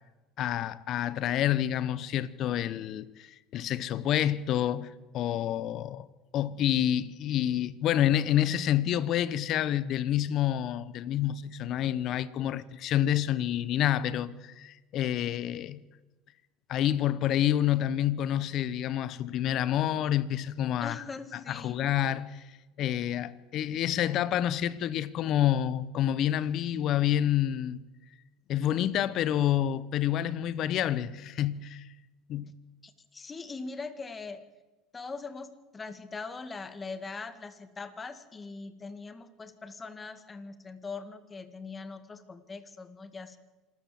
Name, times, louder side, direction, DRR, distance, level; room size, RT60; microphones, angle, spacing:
voice 1, 0.4-6.1 6.3-15.8 16.7-21.0 21.3-27.8 28.5-31.9 32.3-32.5, left 11 dB, 55° left, 1.1 m, -28 dB
voice 2, 20.8-21.8 32.8-34.4 34.9-43.4, left 4 dB, 25° left, 2.1 m, -41 dB
26.0 x 13.5 x 7.7 m
supercardioid pair, 95°, 0 cm